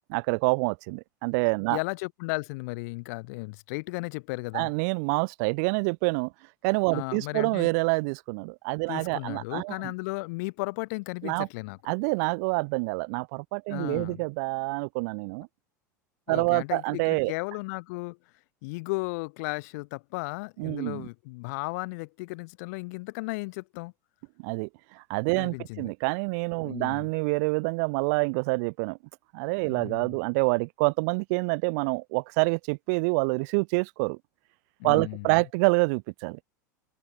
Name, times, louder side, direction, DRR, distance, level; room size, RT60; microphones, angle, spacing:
voice 1, 0.1-1.8 4.5-6.3 6.6-9.9 11.2-11.5 11.9-15.5 16.3-17.3 20.6-21.1 24.4-29.0 29.3-34.2 34.8-36.4, right 32 dB, 60° right, 0.4 m, -27 dB
voice 2, 1.7-4.7 6.9-7.7 8.9-11.9 13.7-14.2 16.3-18.2 18.6-23.9 25.4-25.9 26.6-27.1 29.7-30.1 34.8-35.4, left 27 dB, 65° left, 0.6 m, -35 dB
open air
hypercardioid pair, 90°, 10 cm